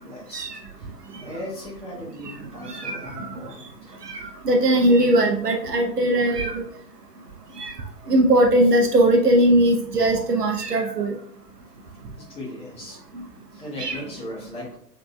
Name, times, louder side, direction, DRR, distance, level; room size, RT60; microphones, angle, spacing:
voice 1, 0.0-0.5 0.8-0.9 1.2-3.9 12.2-13.0 13.5-14.8, left 1 dB, 10° left, -6 dB, 1.6 m, -38 dB
voice 2, 2.6-3.4 4.1-4.2 4.4-6.6 7.6-7.7 8.1-11.1 13.8-14.0, right 1 dB, 70° right, 2 dB, 0.9 m, -19 dB
6.0 x 3.4 x 2.2 m, 0.65 s
figure-of-eight pair, 115°, 48 cm